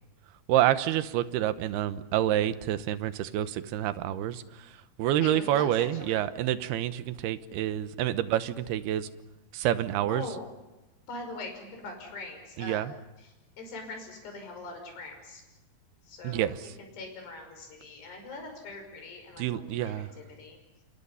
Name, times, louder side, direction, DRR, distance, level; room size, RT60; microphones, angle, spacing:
voice 1, 0.5-4.7 5.0-9.1 9.5-10.3 12.6-12.9 16.2-16.7 19.4-20.1, right 12 dB, 75° right, 13 dB, 3.0 m, -28 dB
voice 2, 5.0-6.2 10.1-10.4 11.1-12.8 13.2-15.4 16.1-20.6, left 3 dB, 80° left, 4 dB, 7.7 m, -42 dB
28.0 x 28.0 x 5.6 m, 1.0 s
omnidirectional pair, 4.7 m